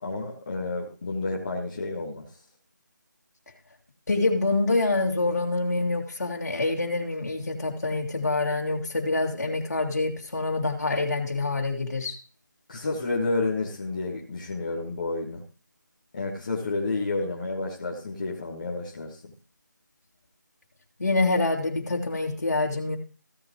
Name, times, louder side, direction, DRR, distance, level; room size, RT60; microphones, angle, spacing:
voice 1, 0.0-2.2 12.7-15.4 16.1-19.3, left 3 dB, 25° left, -4 dB, 1.6 m, -30 dB
voice 2, 4.1-12.2 21.0-23.0, left 2 dB, 55° left, 0 dB, 2.7 m, -26 dB
15.5 x 7.4 x 3.1 m, 0.37 s
figure-of-eight pair, 170°, 10 cm